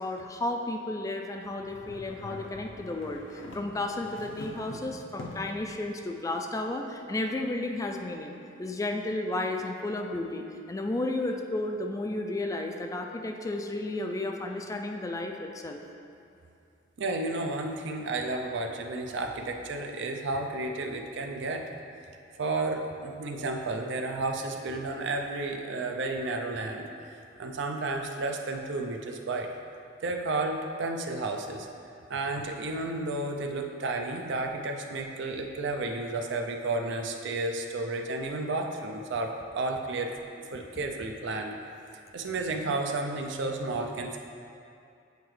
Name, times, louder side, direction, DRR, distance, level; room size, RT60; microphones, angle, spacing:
voice 1, 0.0-8.3 8.6-15.8, left 2 dB, 15° left, 3 dB, 0.3 m, -33 dB
sound 1, 1.6-5.7, left 1 dB, 90° left, 0.6 m, -44 dB
voice 2, 17.0-21.6 22.4-29.5 30.0-31.7 32.1-40.1 40.5-41.5 42.1-44.2, right 2 dB, 65° right, 3 dB, 0.5 m, -32 dB
8.0 x 4.6 x 3.2 m, 2.5 s
head